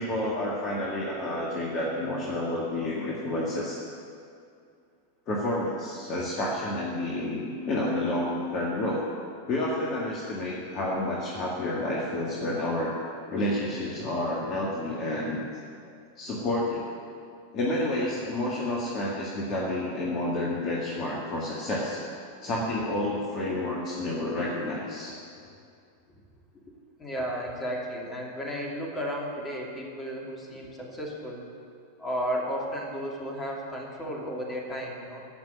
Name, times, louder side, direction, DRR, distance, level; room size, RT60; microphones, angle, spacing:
voice 1, 0.0-3.8 5.3-9.0 9.5-13.0 13.3-15.4 16.2-16.9 17.5-22.0 22.4-25.1, left 1 dB, 35° left, -4 dB, 2.0 m, -29 dB
voice 2, 27.0-31.4 32.0-35.3, equal, 15° left, -2 dB, 2.7 m, -33 dB
15.5 x 6.0 x 9.3 m, 2.4 s
figure-of-eight pair, 90°, 0 cm